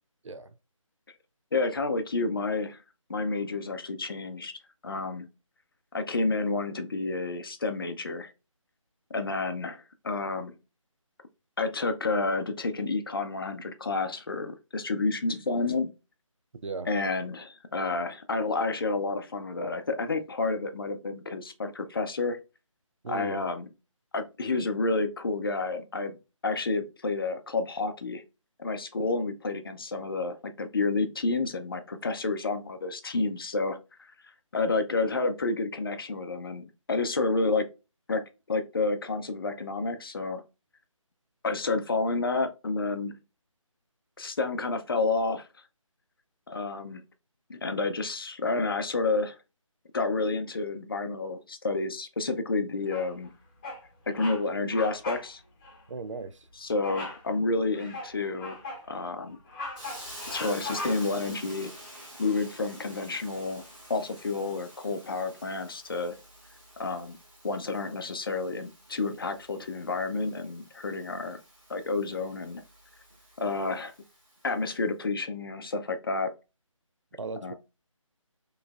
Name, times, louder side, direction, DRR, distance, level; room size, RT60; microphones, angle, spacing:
voice 1, 0.2-0.6 16.6-16.9 23.0-23.4 55.9-56.5 77.2-77.5, right 4 dB, 65° right, 0.5 m, -37 dB
voice 2, 1.5-2.8 3.1-4.5 4.8-5.3 5.9-8.3 9.1-10.6 11.6-15.9 16.9-22.4 23.1-23.7 24.1-26.2 26.4-28.2 28.6-33.8 34.5-37.7 38.1-40.4 41.4-43.2 44.2-45.5 46.5-47.0 47.5-49.4 49.9-53.3 54.1-55.4 56.6-58.6 58.9-59.4 60.3-61.7 62.2-66.2 66.8-67.2 67.4-71.4 71.7-72.6 73.4-73.9 74.4-76.3 77.4-77.5, left 3 dB, 45° left, 0.6 m, -30 dB
Bird vocalization bird call bird song, 52.9-53.3 53.6-53.9 54.1-54.4 54.7-55.3 55.6-55.8 56.8-57.2 57.7-58.9 59.3-61.2, left 2 dB, 15° left, 1.0 m, -38 dB
Hiss, 59.7-74.5, equal, 5° right, 0.9 m, -49 dB
4.9 x 3.2 x 2.3 m
figure-of-eight pair, 160°, 17 cm